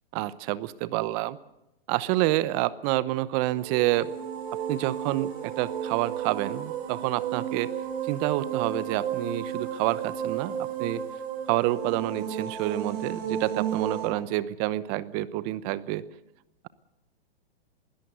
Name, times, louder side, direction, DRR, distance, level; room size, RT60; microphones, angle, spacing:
voice 1, 0.1-1.4 1.9-4.1 4.7-7.7 8.1-11.0 11.5-16.0, right 16 dB, 35° right, 17 dB, 0.9 m, -28 dB
sound 1, 3.5-14.1, right 8 dB, 55° right, 7.7 m, -33 dB
21.5 x 17.0 x 8.1 m, 0.91 s
hypercardioid pair, 125°, 31 cm